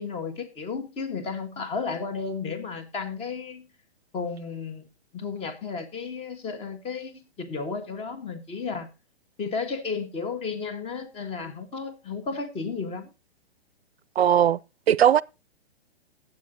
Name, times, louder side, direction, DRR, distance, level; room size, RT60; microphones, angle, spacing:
voice 1, 0.0-3.7 4.1-4.9 5.1-8.9 9.4-13.1, left 5 dB, 20° left, 1.5 m, -33 dB
voice 2, 14.2-14.6 14.9-15.2, right 10 dB, 75° right, 0.5 m, -18 dB
19.5 x 8.2 x 2.8 m
hypercardioid pair, 125°, 32 cm